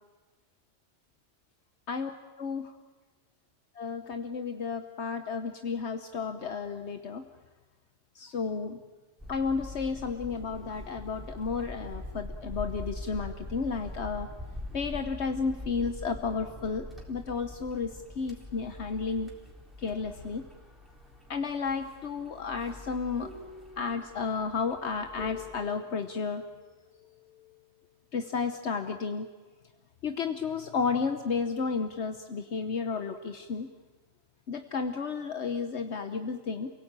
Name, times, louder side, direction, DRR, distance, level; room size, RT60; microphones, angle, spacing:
voice 1, 2.4-2.7 3.8-7.2 8.1-8.8 9.3-14.3 14.7-19.3 19.8-20.4 21.3-23.3 23.8-26.4 28.1-29.3 30.0-33.7 34.5-36.7, left 5 dB, 70° left, 8 dB, 1.3 m, -32 dB
sound 1, 9.2-25.5, left 1 dB, ahead, 3.7 m, -44 dB
sound 2, 23.2-27.8, left 4 dB, 30° left, 2.6 m, -49 dB
28.5 x 17.0 x 8.8 m, 1.3 s
omnidirectional pair, 1.2 m